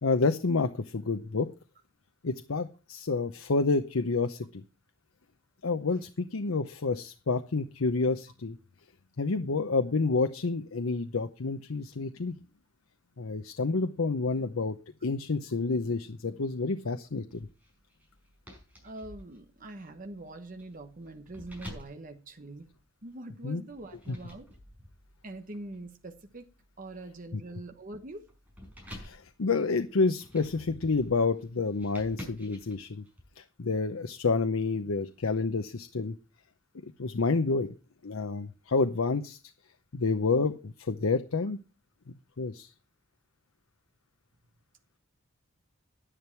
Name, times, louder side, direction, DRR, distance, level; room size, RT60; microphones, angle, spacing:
voice 1, 0.0-1.5 2.2-4.6 5.6-8.6 9.2-12.4 13.2-14.8 15.0-17.5 23.4-23.6 24.1-24.2 27.3-27.4 28.9-33.0 33.4-36.2 37.0-37.7 38.0-39.4 39.9-41.6 42.4-42.7, left 3 dB, 90° left, 0.7 m, -29 dB
sound 1, 17.3-23.1 23.7-33.2, left 1 dB, 10° right, 5.4 m, -50 dB
voice 2, 18.8-22.7 23.0-24.5 25.2-26.4 26.8-28.3, right 2 dB, 40° right, 1.1 m, -43 dB
10.5 x 10.0 x 4.6 m
head